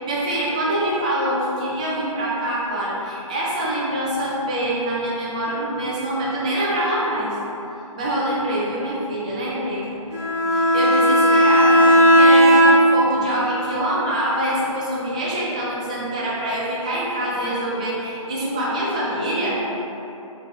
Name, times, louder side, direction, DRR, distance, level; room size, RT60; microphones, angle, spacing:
voice 1, 0.1-7.4 7.9-9.9 10.5-19.6, right 1 dB, 15° right, -6 dB, 0.3 m, -25 dB
Bowed string instrument, 10.1-13.1, equal, 50° right, 1.4 m, -14 dB
4.6 x 3.7 x 2.4 m, 3.0 s
hypercardioid pair, 155°, 18 cm